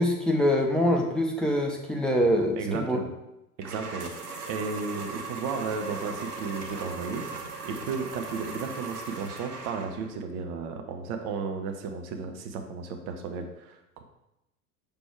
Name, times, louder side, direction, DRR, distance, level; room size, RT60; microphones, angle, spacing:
voice 1, 0.0-3.0, equal, ahead, 0 dB, 0.7 m, -24 dB
voice 2, 2.6-3.1 3.6-7.2 7.6-14.0, right 5 dB, 40° right, 5 dB, 0.8 m, -34 dB
sound 1, 3.6-10.2, right 4 dB, 80° right, 1.0 m, -38 dB
6.1 x 3.5 x 4.5 m, 0.90 s
figure-of-eight pair, 80°, 46 cm